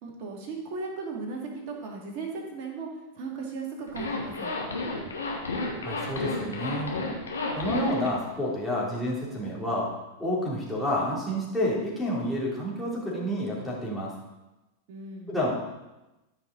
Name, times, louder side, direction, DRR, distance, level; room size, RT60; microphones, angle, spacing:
voice 1, 0.0-2.9 3.1-4.5 14.9-15.3, right 4 dB, 40° right, -1 dB, 2.5 m, -36 dB
Zipper (clothing), 3.9-8.1, left 3 dB, 70° left, 1.6 m, -32 dB
voice 2, 5.8-6.9 7.5-9.9 10.2-14.1 15.3-15.5, equal, 5° left, -6 dB, 3.3 m, -29 dB
13.5 x 5.8 x 4.0 m, 1.0 s
figure-of-eight pair, 90°, 0 cm